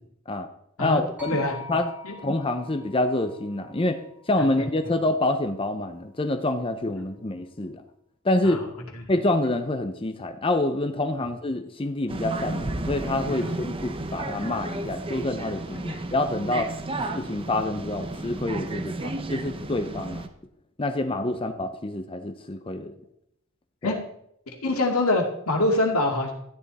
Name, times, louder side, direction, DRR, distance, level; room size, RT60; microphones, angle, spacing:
voice 1, 0.8-1.4 1.7-1.9 2.2-7.8 8.2-8.6 9.1-16.7 17.1-20.3 20.8-22.9 23.8-24.0, left 2 dB, 25° left, 7 dB, 0.7 m, -27 dB
sound 1, 1.2-5.4, left 5 dB, 5° right, 2.1 m, -44 dB
sound 2, 12.1-20.3, right 2 dB, 25° right, 0.8 m, -33 dB
voice 2, 24.6-26.3, left 2 dB, 85° left, 2 dB, 2.3 m, -25 dB
13.0 x 9.8 x 4.1 m, 0.74 s
head